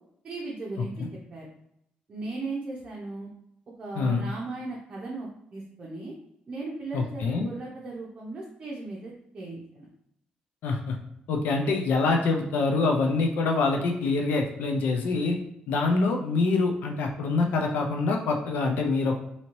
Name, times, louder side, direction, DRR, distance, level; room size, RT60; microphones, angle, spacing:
voice 1, 0.2-1.1 1.3-1.5 2.1-3.3 3.8-6.1 6.5-9.9, right 3 dB, 35° right, -4 dB, 0.6 m, -37 dB
voice 2, 6.9-7.5 10.6-11.0 11.3-15.4 15.7-19.2, left 3 dB, 75° left, 2 dB, 0.5 m, -25 dB
2.8 x 2.7 x 3.0 m, 0.77 s
cardioid pair, 120°, 3 cm